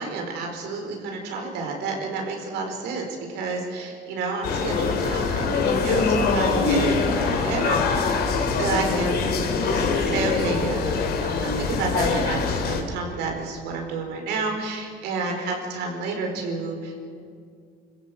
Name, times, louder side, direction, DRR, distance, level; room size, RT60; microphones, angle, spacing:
voice 1, 0.0-8.2 8.6-17.0, right 3 dB, 85° right, 3 dB, 4.8 m, -30 dB
sound 1, 4.4-12.8, left 4 dB, 70° left, 3.1 m, -23 dB
26.0 x 16.0 x 7.8 m, 2.3 s
cardioid pair, 110°, 17 cm